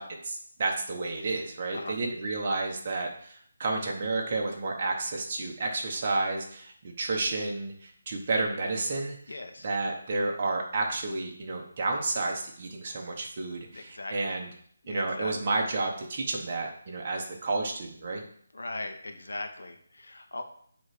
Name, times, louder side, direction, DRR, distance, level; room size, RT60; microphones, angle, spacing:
voice 1, 0.0-14.5 14.9-18.2, right 3 dB, 25° right, 0 dB, 1.0 m, -31 dB
voice 2, 9.3-9.7 13.7-14.3 14.8-15.3 18.5-20.4, left 2 dB, 85° left, 5 dB, 1.1 m, -39 dB
7.1 x 3.1 x 4.9 m, 0.62 s
hypercardioid pair, 175°, 0 cm